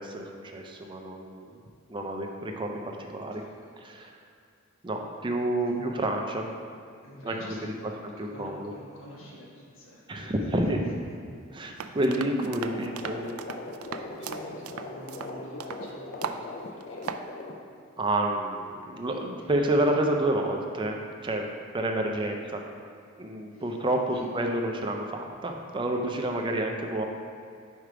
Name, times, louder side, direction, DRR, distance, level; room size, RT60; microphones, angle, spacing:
voice 1, 0.0-1.6 1.9-3.4 3.8-4.2 4.8-6.5 7.2-7.6 8.0-8.7 10.1-10.8 11.5-13.3 18.0-21.0 21.2-22.6 23.2-27.0, right 1 dB, 25° right, 2 dB, 0.5 m, -29 dB
voice 2, 3.3-3.7 5.6-5.8 7.0-10.9 11.7-12.0 14.0-17.5 22.1-22.2 23.5-23.8 24.1-24.3, equal, 70° left, -5 dB, 1.3 m, -48 dB
sound 1, 11.8-15.9 16.2-16.4 16.8-17.3, right 7 dB, 90° right, 0.3 m, -37 dB
sound 2, 12.5-17.6, left 2 dB, 40° left, 0.4 m, -40 dB
4.9 x 4.5 x 4.9 m, 2.3 s
head